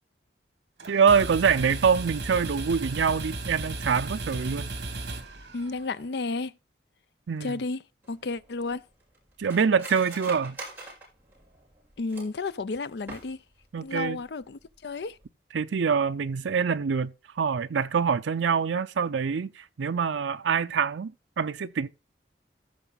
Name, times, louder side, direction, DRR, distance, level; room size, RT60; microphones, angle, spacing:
sound 1, 0.8-6.0, right 2 dB, 65° right, 2.3 m, -35 dB
voice 1, 0.9-4.7 7.3-7.6 9.4-10.6 13.7-14.2 15.5-21.9, right 6 dB, 85° right, 0.5 m, -25 dB
voice 2, 5.5-6.5 7.4-7.8 8.1-8.8 12.0-13.4 13.8-15.2, left 3 dB, 65° left, 0.5 m, -32 dB
Cutlery silverware, 8.0-12.5 12.9-13.6 14.0-14.1 14.4-14.8 15.1-15.3, right 2 dB, 10° right, 5.2 m, -44 dB
14.5 x 5.0 x 4.0 m
head